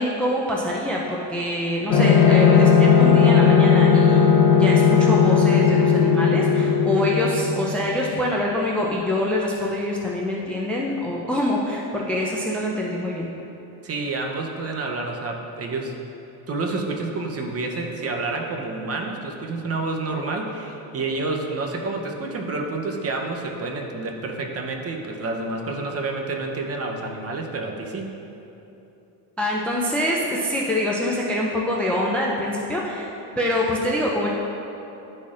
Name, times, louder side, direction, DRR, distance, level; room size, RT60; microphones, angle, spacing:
voice 1, 0.0-13.3 29.4-33.1 33.4-34.3, left 1 dB, 5° left, -3 dB, 0.4 m, -25 dB
sound 1, 1.9-8.2, left 6 dB, 50° left, 0.9 m, -16 dB
voice 2, 13.8-16.0 16.5-28.1, right 3 dB, 30° right, 1 dB, 0.8 m, -29 dB
11.5 x 4.2 x 2.5 m, 3.0 s
cardioid pair, 110°, 45 cm